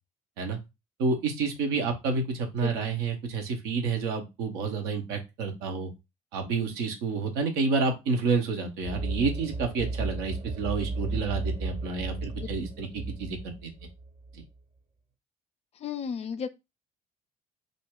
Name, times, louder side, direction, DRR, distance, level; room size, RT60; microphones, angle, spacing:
voice 1, 1.0-5.9 6.3-13.7, right 4 dB, 65° right, 0.8 m, -29 dB
sound 1, 8.8-14.4, right 3 dB, 35° right, 0.5 m, -34 dB
voice 2, 15.8-16.5, left 7 dB, 35° left, 0.4 m, -33 dB
2.5 x 2.1 x 3.5 m
figure-of-eight pair, 50°, 18 cm